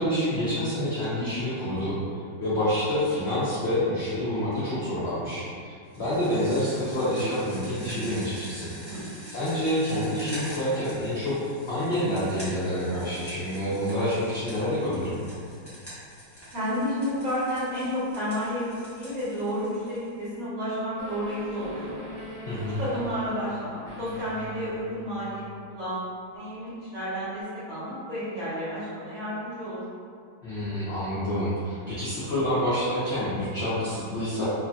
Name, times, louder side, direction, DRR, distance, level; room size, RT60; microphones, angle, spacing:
voice 1, 0.0-1.9 2.4-8.7 9.3-11.4 11.7-15.2 22.4-22.8 30.4-34.4, equal, 70° left, -12 dB, 0.6 m, -27 dB
sound 1, 5.9-20.3, equal, 20° left, 0.3 m, -45 dB
voice 2, 16.5-18.6 18.9-21.9 22.8-25.4 25.7-29.8, equal, 50° right, -13 dB, 1.6 m, -31 dB
sound 2, 21.0-25.6, left 1 dB, 75° right, 1.2 m, -41 dB
3.1 x 2.6 x 2.3 m, 2.3 s
omnidirectional pair, 2.0 m